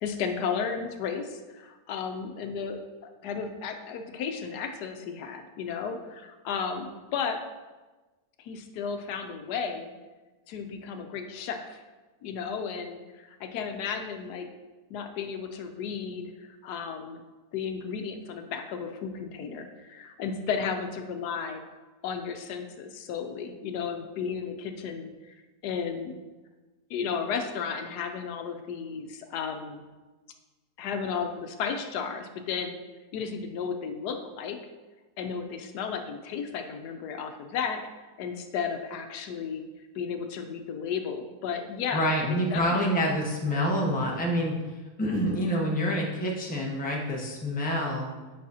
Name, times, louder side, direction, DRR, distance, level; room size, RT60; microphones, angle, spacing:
voice 1, 0.0-2.8 3.2-7.4 8.4-9.9 10.5-11.8 12.2-14.5 14.9-17.2 17.5-21.6 22.0-25.3 25.6-26.2 26.9-29.8 30.8-32.8 33.1-34.6 35.2-39.6 39.9-42.9, left 6 dB, 80° left, 6 dB, 1.2 m, -34 dB
voice 2, 41.9-44.5 45.0-48.1, equal, 5° left, -2 dB, 0.7 m, -27 dB
8.6 x 5.5 x 2.8 m, 1.2 s
omnidirectional pair, 1.7 m